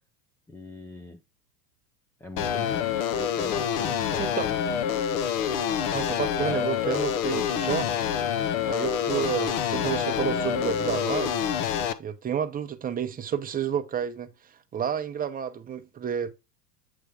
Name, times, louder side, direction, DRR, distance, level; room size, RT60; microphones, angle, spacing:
voice 1, 0.5-1.2 2.2-4.7, left 2 dB, 5° left, 0.4 m, -42 dB
sound 1, 2.4-11.9, left 8 dB, 60° left, 1.0 m, -27 dB
voice 2, 5.9-7.9 8.7-11.4 12.0-14.3 14.7-16.3, right 8 dB, 20° right, 0.9 m, -30 dB
8.4 x 3.1 x 5.0 m
hypercardioid pair, 110°, 47 cm